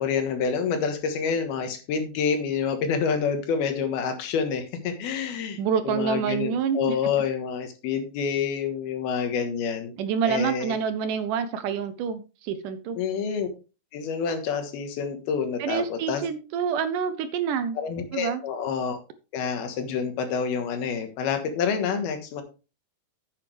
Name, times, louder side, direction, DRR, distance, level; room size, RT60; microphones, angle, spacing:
voice 1, 0.0-5.6 5.8-9.9 10.3-10.8 13.0-13.5 13.9-16.2 17.8-19.0 19.3-22.4, left 6 dB, 90° left, 7 dB, 3.4 m, -28 dB
voice 2, 5.6-7.0 10.0-13.0 15.6-17.8 18.1-18.4, right 7 dB, 75° right, 10 dB, 2.1 m, -27 dB
10.0 x 8.3 x 3.4 m, 0.33 s
omnidirectional pair, 4.2 m